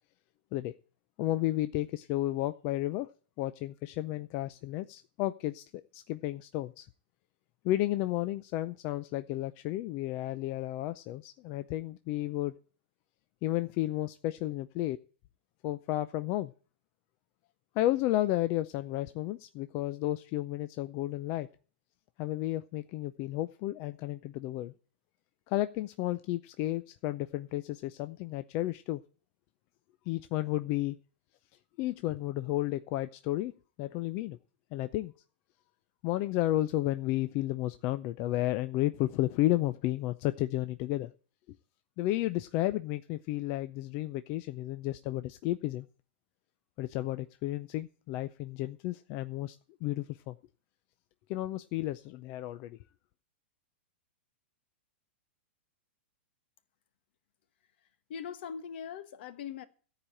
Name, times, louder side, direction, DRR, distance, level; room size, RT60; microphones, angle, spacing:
voice 1, 1.2-3.1 3.4-6.9 7.6-12.5 13.4-15.0 15.6-16.5 17.8-21.5 22.2-24.7 25.5-29.0 30.1-31.0 31.8-33.5 33.8-34.4 34.7-35.1 36.0-41.1 42.0-45.9 46.8-50.4 51.3-52.8, left 15 dB, 35° left, 0.5 m, -32 dB
voice 2, 58.1-59.7, left 7 dB, 60° left, 1.3 m, -41 dB
14.0 x 5.0 x 8.8 m
hypercardioid pair, 150°, 6 cm